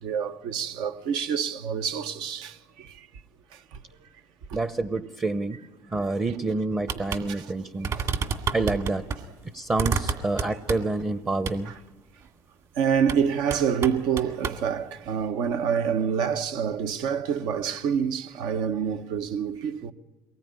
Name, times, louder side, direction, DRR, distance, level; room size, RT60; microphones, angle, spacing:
voice 1, 0.0-3.1 3.5-3.8 4.5-4.6 5.9-6.0 7.1-7.5 7.9-8.1 11.6-11.7 12.8-19.9, right 7 dB, 70° right, 1.2 m, -27 dB
voice 2, 4.5-5.6 5.9-7.9 8.5-9.1 9.5-11.7, right 2 dB, 20° right, 0.9 m, -28 dB
sound 1, 6.9-7.2 7.5-7.6 7.8-9.2 9.8-11.0 11.5-11.6 13.0-13.2 13.5-14.6, right 5 dB, 45° right, 2.1 m, -29 dB
23.5 x 19.5 x 9.6 m
supercardioid pair, 105°, 8 cm